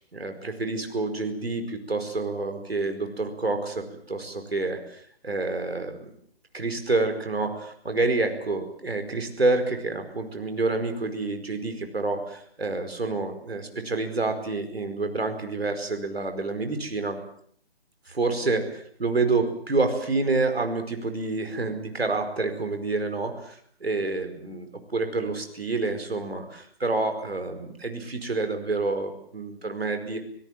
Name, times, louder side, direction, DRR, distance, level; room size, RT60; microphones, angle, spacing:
voice 1, 0.1-6.1 6.5-17.2 18.1-30.2, right 3 dB, 65° right, 6 dB, 4.9 m, -28 dB
27.5 x 17.0 x 7.6 m, 0.63 s
figure-of-eight pair, 145°, 32 cm